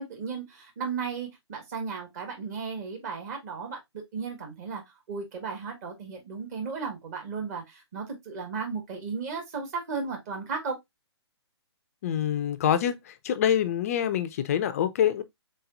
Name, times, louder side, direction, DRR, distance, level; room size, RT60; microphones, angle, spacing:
voice 1, 0.0-4.8 5.1-10.8, right 5 dB, 35° right, 1.5 m, -35 dB
voice 2, 12.0-12.9 13.2-15.2, left 9 dB, 30° left, 0.4 m, -25 dB
4.1 x 3.8 x 2.5 m
figure-of-eight pair, 135°, 15 cm